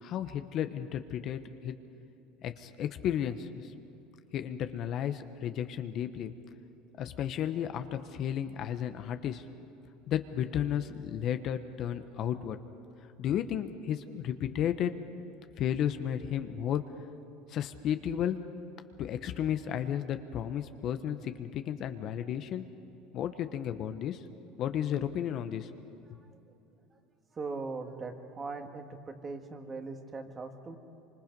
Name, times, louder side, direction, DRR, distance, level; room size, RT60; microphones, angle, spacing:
voice 1, 0.0-1.8 2.4-3.7 4.3-6.3 7.0-9.4 10.1-12.6 13.2-14.9 15.6-16.8 17.5-18.4 19.0-22.7 23.1-24.2 24.6-26.0, left 10 dB, 50° left, 9 dB, 1.0 m, -33 dB
voice 2, 27.3-30.8, right 3 dB, 25° right, 5 dB, 1.9 m, -40 dB
25.5 x 25.0 x 5.4 m, 2.9 s
supercardioid pair, 115°, 0 cm